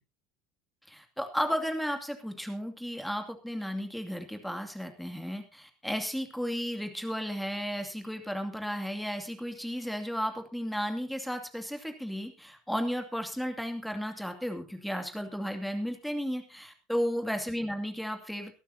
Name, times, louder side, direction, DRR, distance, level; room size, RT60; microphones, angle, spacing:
voice 1, 0.9-18.5, equal, ahead, 6 dB, 2.5 m, -34 dB
22.5 x 12.0 x 2.8 m, 0.27 s
hypercardioid pair, 70°, 2 cm